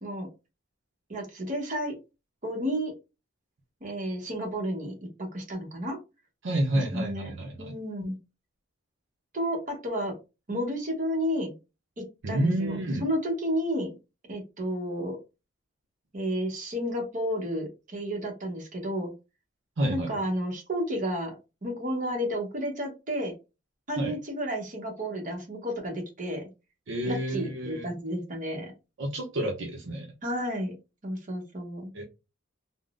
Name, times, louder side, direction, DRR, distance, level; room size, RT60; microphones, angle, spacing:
voice 1, 1.1-1.9 2.4-2.9 3.8-6.0 6.7-7.3 7.6-8.2 9.3-10.1 10.5-11.5 12.0-13.9 14.3-15.2 16.1-19.1 19.9-21.4 21.6-23.3 23.9-26.5 27.0-28.7 30.2-30.7 31.0-31.9, equal, 40° right, 1 dB, 0.9 m, -31 dB
voice 2, 6.4-7.7 12.2-13.0 19.8-20.2 24.0-24.1 26.9-27.9 29.0-30.1 31.9-32.0, right 1 dB, 65° right, 0 dB, 0.6 m, -29 dB
3.5 x 2.0 x 2.4 m, 0.28 s
head